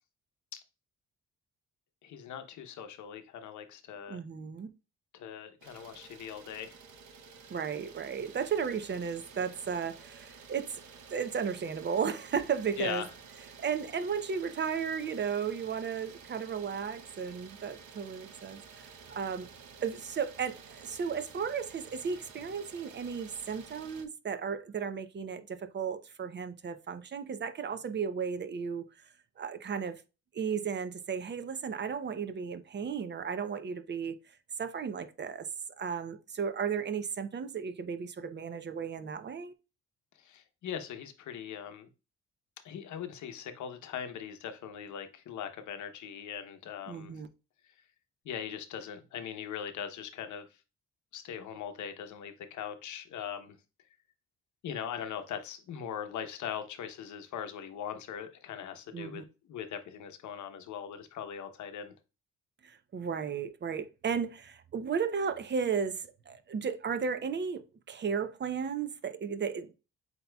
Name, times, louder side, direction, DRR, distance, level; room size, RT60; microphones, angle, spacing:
voice 1, 2.0-4.2 5.1-6.8 12.8-13.1 40.2-41.9 42.6-47.1 48.2-50.5 51.1-53.5 54.6-59.2 59.5-61.9, left 8 dB, 75° left, 0.8 m, -40 dB
voice 2, 4.1-4.7 7.5-10.8 11.1-13.1 13.6-19.5 19.8-29.1 29.4-30.0 30.3-34.2 34.6-35.5 35.8-39.5 46.9-47.3 58.9-59.2 62.6-69.7, right 6 dB, 35° right, 0.6 m, -34 dB
Idling, 5.6-24.1, right 6 dB, 70° right, 0.9 m, -52 dB
7.8 x 2.9 x 2.2 m
cardioid pair, 90°, 30 cm